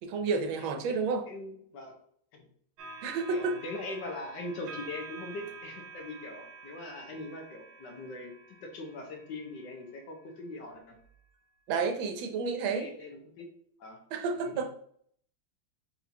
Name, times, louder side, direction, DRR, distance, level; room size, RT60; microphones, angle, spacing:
voice 1, 0.0-1.2 3.0-3.6 11.7-12.9 14.1-14.7, right 4 dB, 90° right, 5 dB, 1.5 m, -30 dB
voice 2, 1.3-1.9 2.3-2.5 3.3-8.3 8.6-11.0 12.6-13.5 13.8-14.0 14.4-14.6, left 2 dB, 65° left, 2 dB, 1.5 m, -41 dB
sound 1, 2.8-10.2 11.0-11.2, right 3 dB, 70° right, 1.5 m, -48 dB
4.4 x 4.2 x 2.8 m, 0.62 s
omnidirectional pair, 2.1 m